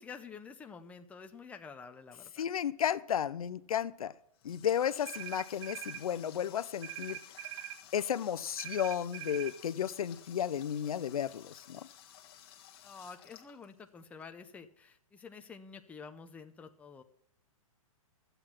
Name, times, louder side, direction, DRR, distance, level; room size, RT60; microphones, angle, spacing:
voice 1, 0.0-2.4 12.8-17.0, left 5 dB, 5° left, 0.6 m, -49 dB
voice 2, 2.4-4.1 4.4-7.2 7.9-11.9, left 9 dB, 80° left, 0.6 m, -33 dB
Water tap faucet, 4.1-14.2, left 10 dB, 40° left, 1.4 m, -55 dB
sound 1, 5.0-6.0 6.8-7.8 8.6-9.6, right 13 dB, 50° right, 1.3 m, -43 dB
12.5 x 8.0 x 5.9 m
hypercardioid pair, 145°, 18 cm